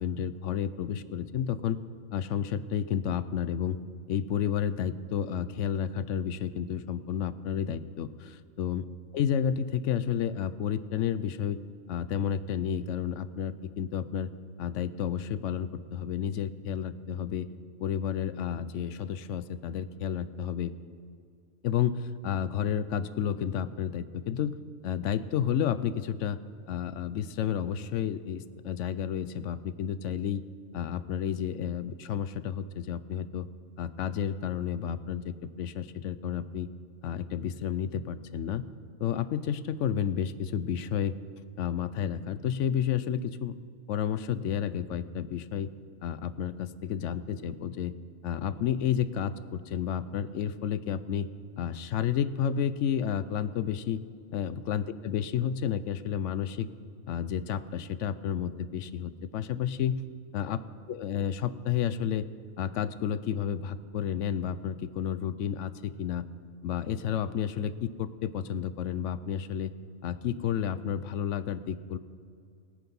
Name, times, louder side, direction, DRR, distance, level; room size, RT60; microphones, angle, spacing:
voice 1, 0.0-1.8 2.1-3.8 4.1-8.1 8.6-8.8 9.1-11.6 11.9-14.3 14.6-17.5 17.8-20.7 21.6-24.6 24.8-26.4 26.7-30.4 30.7-33.5 33.8-36.7 37.0-38.6 39.0-41.1 41.6-43.6 43.9-45.7 46.0-47.9 48.2-51.3 51.6-54.0 54.3-56.7 57.1-60.0 60.3-60.6 60.9-62.2 62.6-66.2 66.6-69.7 70.0-72.0, left 8 dB, 70° left, 14 dB, 0.8 m, -31 dB
17.5 x 9.7 x 5.4 m, 2.3 s
omnidirectional pair, 1.4 m